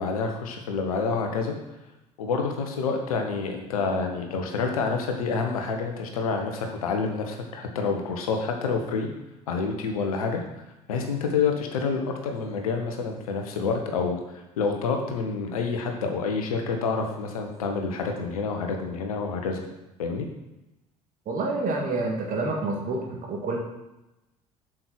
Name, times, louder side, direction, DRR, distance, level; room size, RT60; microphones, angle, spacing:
voice 1, 0.0-1.5 2.2-9.1 9.5-10.4 10.9-14.2 14.6-19.6 20.0-20.3, left 4 dB, 70° left, 4 dB, 1.4 m, -28 dB
voice 2, 21.3-23.6, right 2 dB, 45° right, -1 dB, 2.6 m, -28 dB
8.1 x 6.4 x 6.2 m, 0.98 s
figure-of-eight pair, 55°, 19 cm